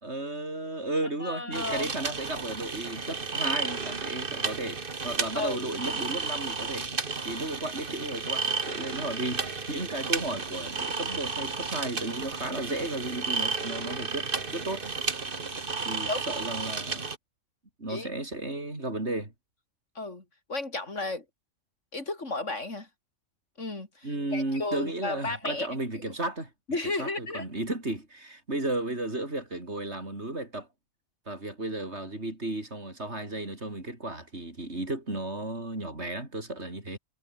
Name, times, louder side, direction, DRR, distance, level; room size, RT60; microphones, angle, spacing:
voice 1, 0.0-6.9 7.2-14.9 15.8-17.1 17.8-19.3 24.0-26.5 27.0-30.7 31.3-37.0, right 2 dB, 65° right, 5.6 m, -34 dB
voice 2, 1.2-1.9 5.3-5.7 16.1-16.2 17.9-18.1 20.0-20.2 20.5-21.2 21.9-22.9 23.6-25.8 26.7-27.5, left 2 dB, 80° left, 4.3 m, -33 dB
sound 1, 1.5-17.2, right 4 dB, 45° right, 2.0 m, -33 dB
omnidirectional pair, 1.2 m